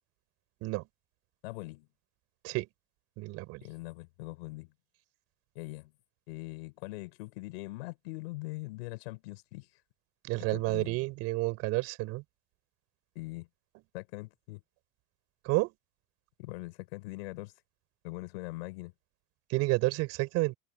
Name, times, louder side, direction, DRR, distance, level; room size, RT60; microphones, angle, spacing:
voice 1, 1.4-1.9 3.6-4.7 5.5-5.9 6.3-9.7 10.5-10.9 13.1-13.5 13.9-14.6 16.4-17.5 18.0-18.9, left 22 dB, 85° left, 6.8 m, -42 dB
voice 2, 3.2-3.6 10.2-12.2 15.4-15.7 19.5-20.5, right 22 dB, 55° right, 5.6 m, -30 dB
cardioid pair, 155°, 30 cm